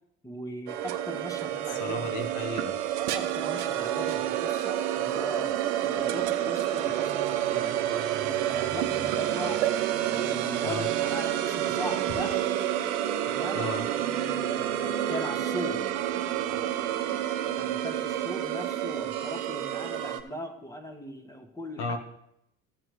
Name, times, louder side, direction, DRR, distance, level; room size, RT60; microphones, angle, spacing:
voice 1, 0.2-2.2 3.1-5.5 5.8-9.6 10.1-12.5 13.3-13.7 14.4-15.8 16.5-16.9 17.4-22.0, left 1 dB, 10° left, 5 dB, 1.3 m, -39 dB
sound 1, 0.7-20.2, right 12 dB, 85° right, 0.8 m, -29 dB
voice 2, 1.8-2.8 10.6-10.9 13.5-13.8 21.8-22.0, left 3 dB, 75° left, 6 dB, 1.5 m, -34 dB
sound 2, 15.3-15.9, equal, 15° right, 1.7 m, -44 dB
14.5 x 7.5 x 3.2 m, 0.76 s
supercardioid pair, 90°, 33 cm